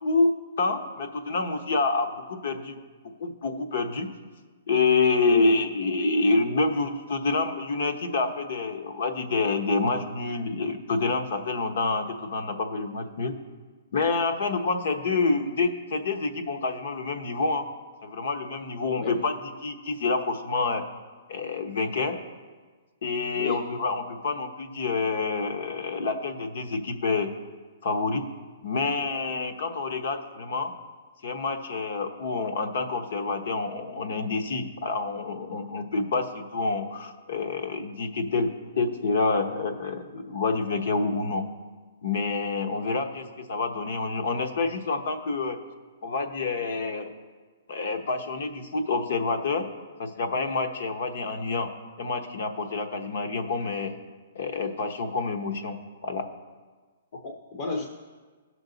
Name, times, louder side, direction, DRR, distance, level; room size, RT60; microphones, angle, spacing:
voice 1, 0.0-2.8 3.2-4.1 4.7-13.3 13.9-17.7 18.0-19.3 19.6-20.8 21.3-22.2 23.0-27.3 27.8-28.2 28.6-30.7 31.2-38.5 38.7-41.4 42.0-45.6 46.0-47.1 47.7-49.7 50.0-51.7 52.0-53.9 54.3-55.8 56.0-56.3 57.1-57.2, left 3 dB, 55° left, 7 dB, 1.0 m, -27 dB
voice 2, 57.2-57.9, left 3 dB, 25° left, 1 dB, 0.7 m, -31 dB
16.0 x 6.2 x 4.0 m, 1.4 s
hypercardioid pair, 170°, 0 cm